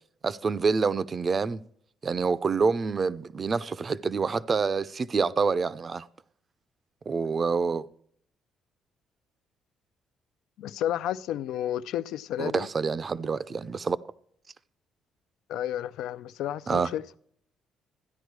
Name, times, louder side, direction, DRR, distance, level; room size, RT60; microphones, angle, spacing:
voice 1, 0.2-1.6 2.0-6.1 7.1-7.9 12.4-14.0 16.7-16.9, right 5 dB, 25° right, 0.5 m, -27 dB
voice 2, 10.6-12.7 15.5-17.0, left 11 dB, 80° left, 0.5 m, -31 dB
13.5 x 10.5 x 4.7 m
cardioid pair, 165°, 0 cm